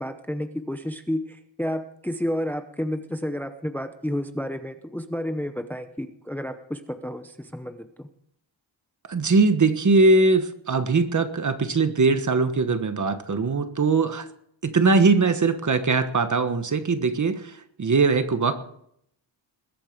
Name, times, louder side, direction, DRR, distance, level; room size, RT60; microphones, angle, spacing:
voice 1, 0.0-8.1, equal, 5° left, 8 dB, 0.7 m, -31 dB
voice 2, 9.1-14.3 14.6-17.5 17.8-18.6, right 3 dB, 40° right, 9 dB, 1.3 m, -21 dB
21.0 x 8.6 x 6.7 m, 0.71 s
wide cardioid pair, 160°, 46 cm